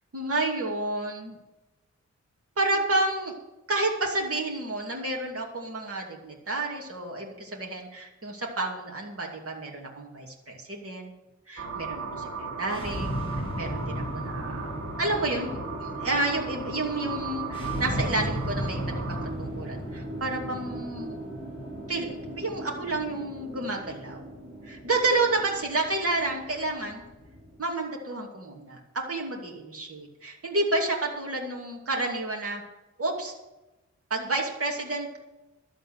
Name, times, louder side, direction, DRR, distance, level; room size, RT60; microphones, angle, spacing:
voice 1, 0.1-1.4 2.6-3.3 3.7-11.1 11.5-14.7 15.0-21.2 21.9-24.2 24.6-27.0 27.6-32.6 33.0-33.3 34.1-35.2, right 2 dB, 50° right, -1 dB, 2.7 m, -30 dB
sound 1, 11.6-19.3, right 5 dB, 65° right, 3.8 m, -37 dB
sound 2, 12.7-27.6, equal, 20° left, 5.7 m, -36 dB
12.5 x 7.9 x 7.8 m, 1.0 s
wide cardioid pair, 135°, 29 cm